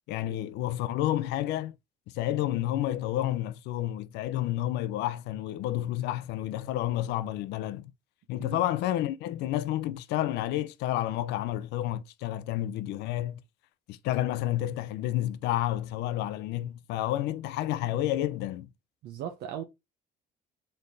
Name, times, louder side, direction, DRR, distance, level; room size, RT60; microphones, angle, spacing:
voice 1, 0.1-1.7 2.1-7.9 8.3-13.4 13.9-18.7, left 13 dB, 85° left, 0.4 m, -30 dB
voice 2, 19.0-19.6, right 9 dB, 75° right, 0.6 m, -38 dB
4.2 x 3.2 x 2.6 m
cardioid pair, 110°, 17 cm